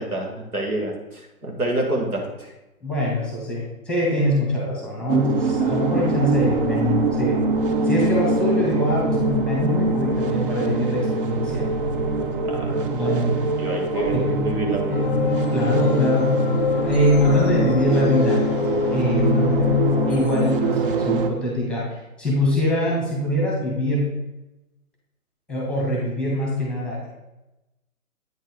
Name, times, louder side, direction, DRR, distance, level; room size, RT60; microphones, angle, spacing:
voice 1, 0.0-2.5 12.4-13.3 13.6-15.2, right 1 dB, 85° right, 0 dB, 1.9 m, -28 dB
voice 2, 2.8-7.4 7.8-11.7 12.9-13.4 13.9-14.5 15.5-16.3 16.8-18.5 18.9-19.6 20.0-24.1 25.5-27.1, equal, ahead, -4 dB, 1.3 m, -23 dB
sound 1, 5.1-21.3, right 3 dB, 40° right, 0.6 m, -24 dB
sound 2, 14.9-20.6, left 6 dB, 40° left, 0.6 m, -24 dB
8.8 x 4.3 x 3.5 m, 0.97 s
figure-of-eight pair, 135°, 43 cm